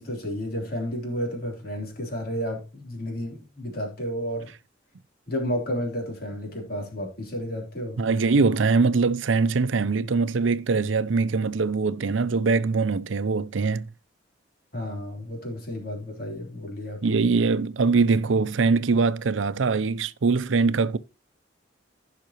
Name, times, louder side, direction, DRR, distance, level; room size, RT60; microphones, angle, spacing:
voice 1, 0.0-4.5 5.3-8.0 14.7-17.3, equal, 50° left, 3.4 m, -32 dB
voice 2, 8.0-13.9 17.0-21.0, right 4 dB, 85° right, 0.6 m, -22 dB
15.5 x 5.8 x 3.0 m
head